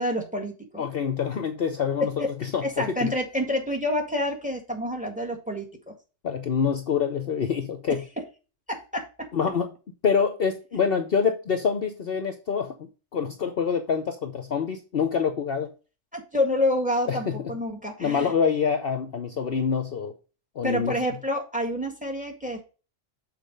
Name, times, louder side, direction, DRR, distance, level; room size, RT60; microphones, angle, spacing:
voice 1, 0.0-0.8 2.0-2.3 2.6-5.9 8.2-8.3 8.7-9.3 16.1-18.3 20.6-22.6, left 1 dB, 5° right, 3 dB, 1.7 m, -28 dB
voice 2, 0.8-2.3 2.5-3.1 6.2-8.0 9.3-9.7 10.0-15.7 17.1-17.3 18.0-20.1 20.6-20.9, left 6 dB, 50° left, 6 dB, 0.9 m, -26 dB
6.5 x 4.5 x 5.2 m, 0.33 s
omnidirectional pair, 1.3 m